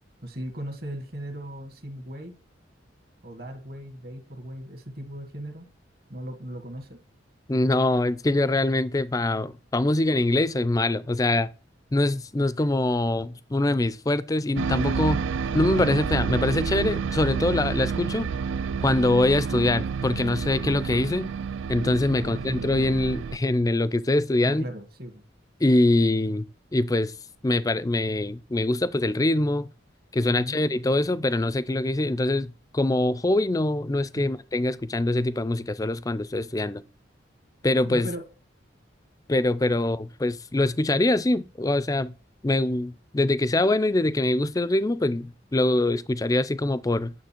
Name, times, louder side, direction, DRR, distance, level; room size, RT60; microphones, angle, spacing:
voice 1, 0.2-2.3 3.2-5.7 6.1-7.0 22.1-22.4 24.4-25.2 30.3-30.6 34.1-34.3 37.8-38.2, right 1 dB, 55° right, 1.7 m, -37 dB
voice 2, 7.5-11.5 11.9-15.2 15.5-18.3 18.8-21.3 21.7-24.6 25.6-26.4 26.7-27.1 27.4-29.7 30.1-36.8 37.6-38.1 39.3-42.1 42.4-47.1, left 2 dB, 20° left, 0.4 m, -24 dB
sound 1, 14.6-23.4, right 6 dB, 85° right, 0.4 m, -29 dB
9.3 x 6.9 x 4.4 m
head